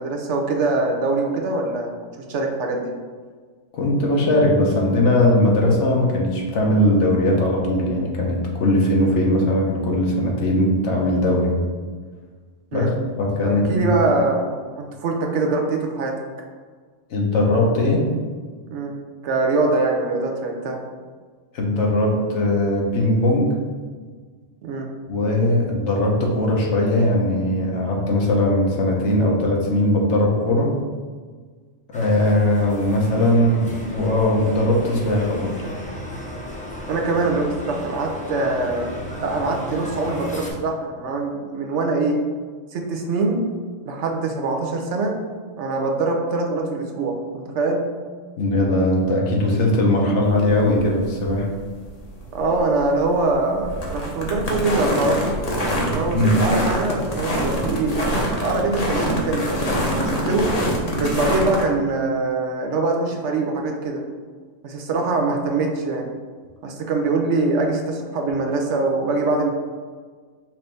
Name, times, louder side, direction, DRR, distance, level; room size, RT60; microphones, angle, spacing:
voice 1, 0.0-2.0 2.3-2.9 12.7-12.9 13.4-16.1 18.7-19.0 19.2-20.8 24.6-24.9 36.9-38.9 39.2-42.2 42.7-43.4 43.9-45.1 45.6-47.8 52.3-55.3 55.9-60.5 60.9-64.0 64.6-66.1 66.6-69.5, right 3 dB, 70° right, 1 dB, 0.9 m, -23 dB
voice 2, 3.7-11.6 12.7-12.9 13.2-13.9 17.1-18.0 21.5-23.5 25.1-30.7 31.9-35.7 48.4-51.5 56.1-56.3, left 1 dB, 70° left, -1 dB, 1.1 m, -19 dB
sound 1, 31.9-40.5, left 1 dB, 10° left, 0.4 m, -35 dB
sound 2, 50.2-61.6, equal, 35° left, 0.7 m, -25 dB
5.7 x 2.6 x 3.3 m, 1.5 s
omnidirectional pair, 1.3 m